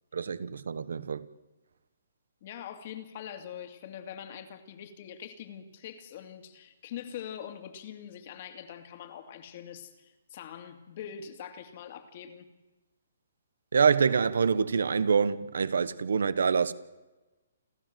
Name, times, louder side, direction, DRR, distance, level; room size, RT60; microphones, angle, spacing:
voice 1, 0.1-1.2 13.7-16.7, right 6 dB, 75° right, 1.3 m, -26 dB
voice 2, 2.4-12.5, left 9 dB, 40° left, 2.4 m, -43 dB
29.5 x 13.0 x 7.8 m
hypercardioid pair, 160°, 0 cm